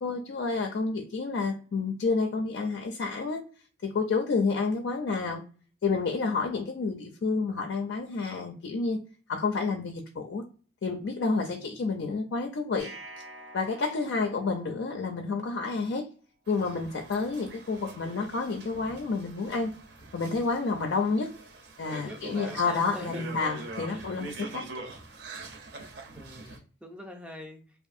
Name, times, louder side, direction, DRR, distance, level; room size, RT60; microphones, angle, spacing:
voice 1, 0.0-3.4 3.8-5.4 5.8-9.0 9.3-10.4 10.8-12.9 13.5-16.1 16.5-19.7 20.1-21.3 21.8-24.6, left 4 dB, 75° left, 0.4 m, -29 dB
sound 1, 12.8-15.9, right 1 dB, 90° right, 0.8 m, -48 dB
sound 2, 16.5-26.6, right 3 dB, 60° right, 0.5 m, -43 dB
voice 2, 21.9-23.4 23.8-24.1 26.1-27.6, left 1 dB, 5° right, 0.3 m, -45 dB
2.6 x 2.4 x 2.4 m
head